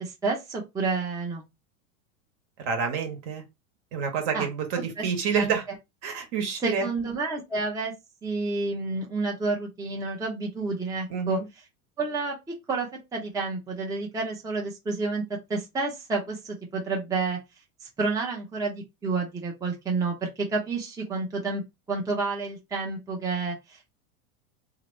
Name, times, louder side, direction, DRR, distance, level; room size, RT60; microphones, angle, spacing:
voice 1, 0.0-1.4 4.3-4.5 5.0-5.1 5.3-5.6 6.6-7.9 8.2-11.4 12.0-12.4 12.7-15.2 15.5-17.4 17.8-21.6 21.9-23.9, right 3 dB, 10° right, 0.7 m, -29 dB
voice 2, 2.6-3.4 3.9-5.6 6.0-6.9 11.1-11.5, right 6 dB, 50° right, 1.2 m, -28 dB
2.8 x 2.6 x 3.1 m
hypercardioid pair, 110°, 42 cm